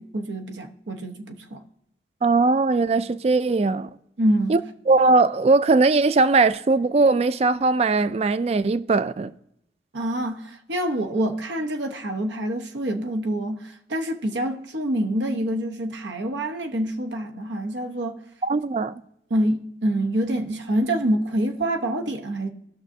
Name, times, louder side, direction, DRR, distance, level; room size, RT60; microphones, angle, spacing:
voice 1, 0.0-1.6 4.2-4.6 9.9-18.2 19.3-22.5, right 1 dB, 90° right, 1.0 m, -26 dB
voice 2, 2.2-3.9 4.5-4.6 4.9-9.3 18.4-18.9, right 3 dB, 35° right, 0.3 m, -20 dB
18.0 x 6.2 x 2.7 m
head